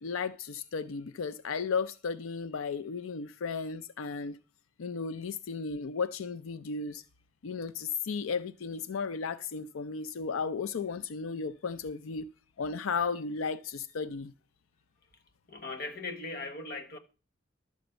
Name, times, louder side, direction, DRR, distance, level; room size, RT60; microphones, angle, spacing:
voice 1, 0.0-4.4 4.8-7.0 7.4-12.3 12.6-14.3, left 5 dB, 85° left, 0.4 m, -34 dB
voice 2, 15.5-17.0, left 3 dB, 45° left, 1.2 m, -39 dB
12.0 x 5.1 x 7.8 m
head